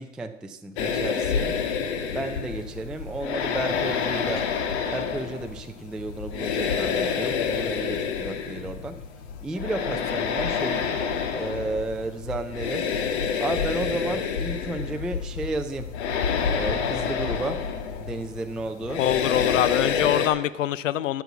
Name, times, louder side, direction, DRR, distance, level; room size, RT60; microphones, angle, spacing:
voice 1, 0.0-1.6 2.1-4.5 4.9-9.0 9.4-10.9 11.3-12.9 13.4-15.9 16.5-17.6 18.0-19.0, right 2 dB, ahead, 7 dB, 0.3 m, -32 dB
sound 1, 0.8-20.3, left 6 dB, 60° left, 1.7 m, -28 dB
voice 2, 18.9-21.2, left 11 dB, 75° left, 16 dB, 0.7 m, -24 dB
13.5 x 7.0 x 5.8 m, 0.87 s
hypercardioid pair, 100°, 38 cm